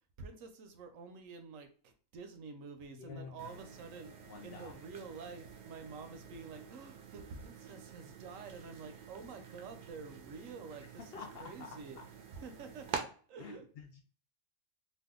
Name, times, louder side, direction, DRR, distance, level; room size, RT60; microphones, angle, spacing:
voice 1, 0.2-12.0 12.4-13.7, right 4 dB, 85° right, 7 dB, 1.0 m, -49 dB
voice 2, 2.9-3.6 4.2-4.7 11.0-12.0 13.4-14.0, left 5 dB, 60° left, 2 dB, 0.7 m, -49 dB
sound 1, 3.4-13.0, right 6 dB, 55° right, 0.6 m, -48 dB
2.7 x 2.3 x 3.6 m, 0.41 s
omnidirectional pair, 1.4 m